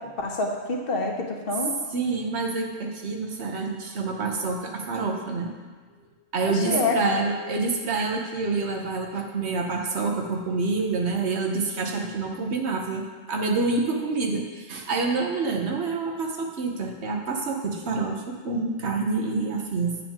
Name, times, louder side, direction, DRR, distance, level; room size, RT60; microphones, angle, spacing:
voice 1, 0.0-1.8 6.5-7.0, left 2 dB, 60° left, 1 dB, 1.1 m, -27 dB
voice 2, 1.9-5.5 6.3-20.0, right 3 dB, 75° right, 2 dB, 1.2 m, -27 dB
8.2 x 7.2 x 3.6 m, 1.4 s
omnidirectional pair, 1.1 m